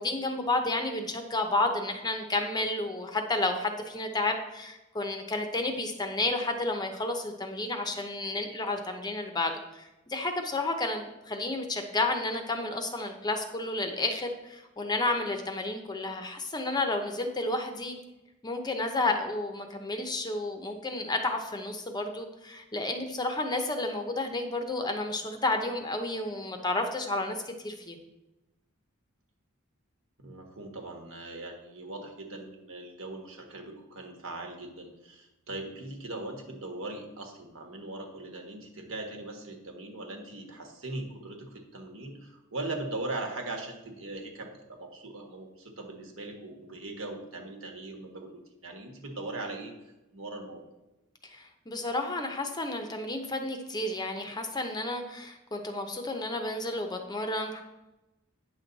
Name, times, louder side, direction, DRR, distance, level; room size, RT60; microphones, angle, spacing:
voice 1, 0.0-18.0 18.4-28.0 51.2-57.6, left 2 dB, 20° left, 5 dB, 0.7 m, -31 dB
voice 2, 30.2-49.7 50.1-50.6, right 2 dB, 65° right, 2 dB, 1.5 m, -40 dB
9.2 x 6.2 x 4.0 m, 0.98 s
head